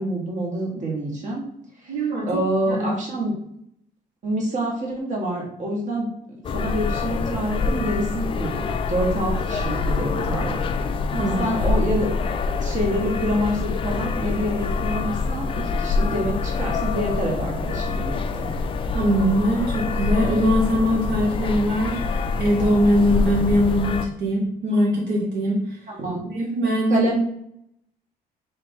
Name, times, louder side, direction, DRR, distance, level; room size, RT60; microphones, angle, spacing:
voice 1, 0.0-1.4 1.8-2.0 2.3-3.3 4.2-6.1 6.5-10.5 11.4-12.1 12.6-18.5 25.9-26.3 26.9-27.2, right 1 dB, 45° right, -1 dB, 1.4 m, -26 dB
voice 2, 1.9-2.9 11.1-11.5 18.9-25.9 26.3-27.1, equal, 75° right, -2 dB, 0.9 m, -22 dB
sound 1, 6.4-24.1, left 4 dB, 30° left, 0.4 m, -25 dB
3.4 x 3.1 x 4.2 m, 0.73 s
cardioid pair, 110°, 17 cm